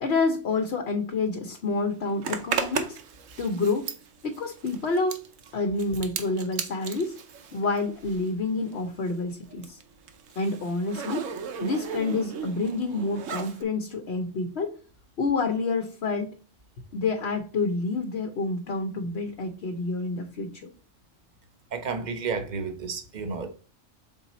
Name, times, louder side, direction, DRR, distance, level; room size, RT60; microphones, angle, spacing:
voice 1, 0.0-3.0 3.4-3.9 4.2-5.2 5.5-7.2 7.5-9.8 10.4-11.3 11.6-14.7 15.2-16.4 16.9-20.5, left 3 dB, 60° left, 1.0 m, -28 dB
Zipper (clothing), 2.2-8.4 8.7-13.6, right 6 dB, 85° right, 1.1 m, -36 dB
voice 2, 21.7-23.5, right 5 dB, 40° right, 0.9 m, -31 dB
6.3 x 4.1 x 4.1 m
omnidirectional pair, 1.3 m